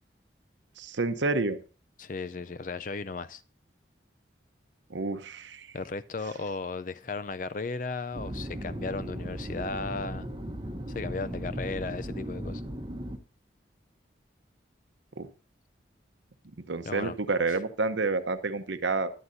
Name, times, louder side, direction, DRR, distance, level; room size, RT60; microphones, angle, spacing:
voice 1, 0.8-1.6 4.9-5.8 15.2-15.3 16.7-19.1, right 3 dB, 80° right, 0.9 m, -29 dB
voice 2, 2.0-3.4 5.7-10.3 10.9-12.6 16.8-17.1, left 4 dB, 45° left, 0.5 m, -35 dB
sound 1, 8.1-13.2, equal, 25° right, 1.0 m, -37 dB
16.0 x 11.0 x 2.7 m
head